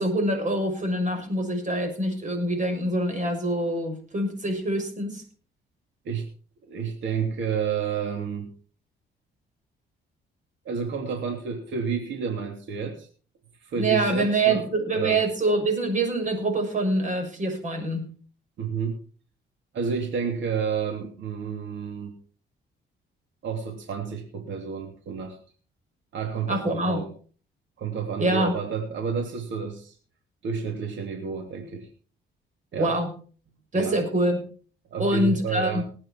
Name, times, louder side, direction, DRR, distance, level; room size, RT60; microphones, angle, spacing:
voice 1, 0.0-5.2 13.7-18.0 26.5-27.0 28.2-28.5 32.8-33.1 33.7-34.5 35.0-35.8, right 1 dB, 40° right, 5 dB, 6.5 m, -25 dB
voice 2, 6.6-8.5 10.6-13.1 13.6-14.7 14.9-15.2 18.6-18.9 19.7-22.1 23.4-25.4 26.1-27.1 27.8-29.9 30.4-31.9 32.7-33.0 33.7-34.0 34.9-35.8, right 6 dB, 70° right, 3 dB, 3.1 m, -30 dB
20.0 x 9.0 x 4.6 m, 0.41 s
cardioid pair, 90°, 20 cm